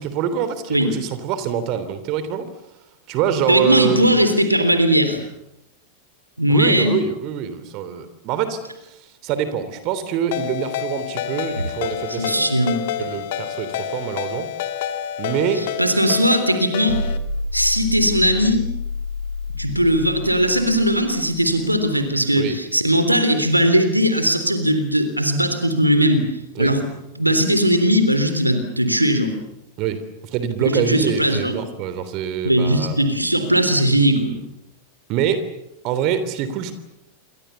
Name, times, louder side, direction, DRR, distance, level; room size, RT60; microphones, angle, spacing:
voice 1, 0.0-2.5 3.1-4.1 6.5-12.5 13.0-14.5 15.2-15.7 22.4-22.6 26.5-26.7 29.8-33.0 35.1-35.5 35.8-36.7, right 8 dB, 40° right, 12 dB, 3.3 m, -25 dB
voice 2, 3.5-5.2 6.4-6.9 12.1-12.8 15.8-17.0 17.5-18.7 19.6-26.2 26.6-26.8 27.2-29.4 30.7-31.6 32.4-34.4, equal, 85° right, 8 dB, 3.5 m, -18 dB
Ringtone, 10.3-17.2, left 10 dB, 55° left, 2.2 m, -28 dB
sound 1, 16.9-21.9, left 3 dB, 90° left, 4.0 m, -29 dB
28.5 x 25.0 x 7.1 m, 0.88 s
figure-of-eight pair, 90°, 0 cm